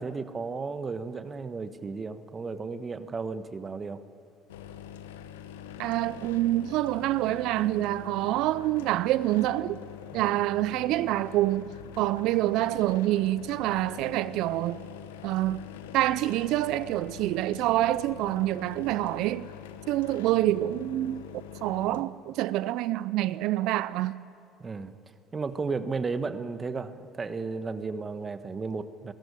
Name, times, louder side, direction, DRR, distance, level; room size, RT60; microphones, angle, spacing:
voice 1, 0.0-4.0 10.1-10.4 24.6-24.9 25.3-29.1, right 4 dB, 30° right, 1.3 m, -34 dB
sound 1, 4.5-22.0, left 9 dB, 90° left, 0.9 m, -44 dB
voice 2, 5.8-9.8 10.1-14.8 15.2-15.7 15.9-19.5 19.9-21.2 21.6-24.2, right 15 dB, 70° right, 0.4 m, -26 dB
21.5 x 14.0 x 9.9 m
hypercardioid pair, 70°, 0 cm